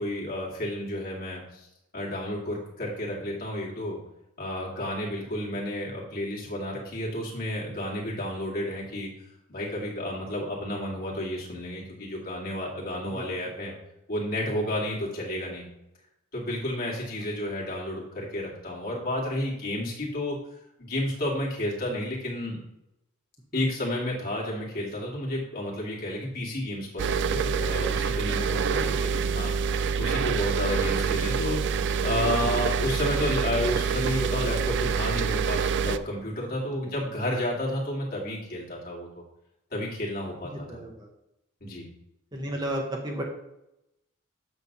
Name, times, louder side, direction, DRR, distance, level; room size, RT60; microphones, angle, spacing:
voice 1, 0.0-1.7 1.9-4.0 4.4-9.1 9.5-13.7 14.1-15.6 16.3-20.4 20.8-22.6 23.5-39.1 39.7-40.8 41.6-41.9, left 1 dB, 45° left, -4 dB, 2.5 m, -31 dB
voice 2, 13.1-13.8 17.6-17.8 23.5-23.7 28.7-29.1 36.7-36.9 40.4-41.1 42.3-43.2, right 1 dB, 20° right, 0 dB, 1.1 m, -35 dB
sound 1, 27.0-36.0, right 6 dB, 55° right, 0.4 m, -26 dB
8.3 x 3.5 x 6.6 m, 0.87 s
head